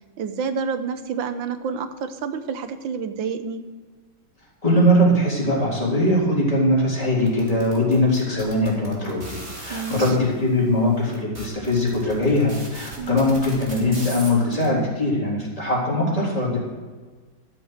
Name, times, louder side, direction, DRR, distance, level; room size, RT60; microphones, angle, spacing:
voice 1, 0.2-3.6 9.7-10.2 13.0-13.2, right 5 dB, 90° right, 9 dB, 1.7 m, -29 dB
voice 2, 4.6-16.6, left 1 dB, 20° left, -5 dB, 3.7 m, -21 dB
sound 1, 7.3-10.1 10.8-10.9 11.1-14.7, right 1 dB, 30° right, 2.8 m, -38 dB
13.0 x 7.6 x 6.6 m, 1.4 s
omnidirectional pair, 2.1 m